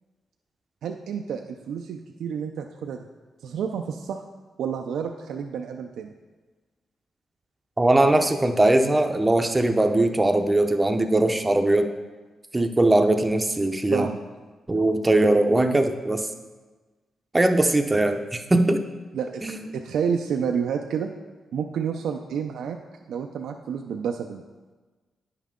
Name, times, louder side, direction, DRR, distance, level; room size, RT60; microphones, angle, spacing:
voice 1, 0.8-3.1 3.4-4.2 4.6-6.1 13.9-14.2 15.6-15.8 19.1-21.1 21.5-22.8 23.1-24.4, right 7 dB, 80° right, 4 dB, 0.4 m, -29 dB
voice 2, 7.8-11.9 12.5-14.1 14.7-16.3 17.3-18.8 19.4-19.6, right 1 dB, 15° right, 6 dB, 0.6 m, -20 dB
9.1 x 5.6 x 3.7 m, 1.3 s
cardioid pair, 80°, 0 cm